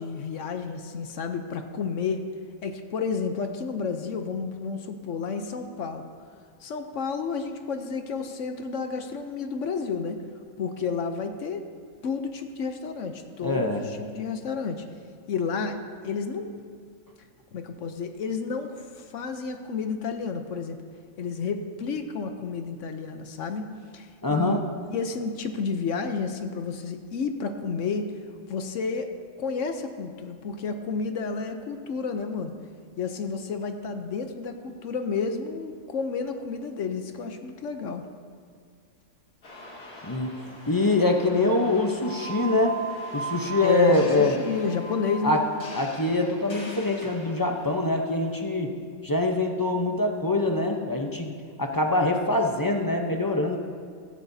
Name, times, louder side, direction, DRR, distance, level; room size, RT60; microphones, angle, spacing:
voice 1, 0.0-2.3 2.6-6.1 6.6-10.2 10.6-11.7 12.0-14.8 15.3-15.8 16.0-16.5 17.5-20.8 21.2-24.6 24.9-28.1 28.5-29.1 29.4-32.5 33.0-38.1 43.6-45.4, left 5 dB, 65° left, 7 dB, 1.0 m, -31 dB
voice 2, 13.4-13.8 24.2-24.6 40.0-40.3 40.7-42.8 43.1-44.4 45.2-45.4 45.7-48.7 49.0-51.3 51.6-53.6, left 2 dB, 20° left, 2 dB, 0.5 m, -24 dB
sound 1, 39.4-48.4, right 2 dB, 80° left, 2.4 m, -40 dB
16.5 x 13.0 x 2.7 m, 2.1 s
omnidirectional pair, 1.5 m